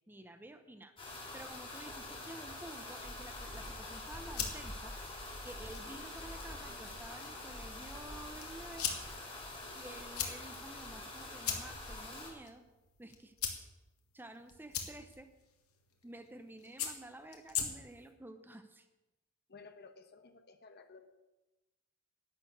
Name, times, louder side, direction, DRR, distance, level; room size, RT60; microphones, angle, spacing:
voice 1, 0.1-0.9 1.3-5.0 5.4-8.9 9.8-12.6 13.0-13.3 14.1-15.3 16.0-18.9, right 1 dB, 10° right, 8 dB, 0.7 m, -51 dB
sound 1, 1.0-12.3, left 2 dB, 25° left, 4.7 m, -45 dB
sound 2, 4.2-18.1, left 8 dB, 85° left, 2.0 m, -43 dB
voice 2, 19.5-21.1, left 4 dB, 50° left, 8 dB, 1.2 m, -56 dB
11.5 x 6.9 x 9.6 m, 1.0 s
head